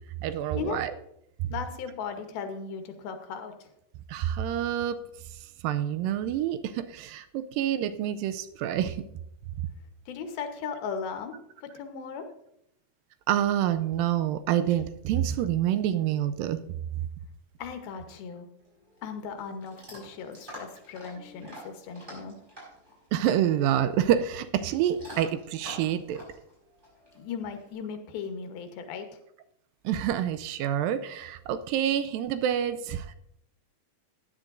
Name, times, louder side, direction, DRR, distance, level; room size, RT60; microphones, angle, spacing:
voice 1, 0.2-0.9 1.4-1.5 4.1-5.0 5.6-9.0 13.3-16.6 23.1-26.2 29.8-33.2, right 10 dB, 80° right, 11 dB, 2.2 m, -27 dB
voice 2, 1.5-3.7 10.1-11.3 11.6-12.3 17.6-18.5 19.0-22.4 27.2-29.2, left 6 dB, 90° left, 6 dB, 3.0 m, -37 dB
Chewing mastication / Dog, 18.6-27.7, equal, 10° right, 4.7 m, -48 dB
17.0 x 9.8 x 2.6 m, 0.76 s
omnidirectional pair, 4.1 m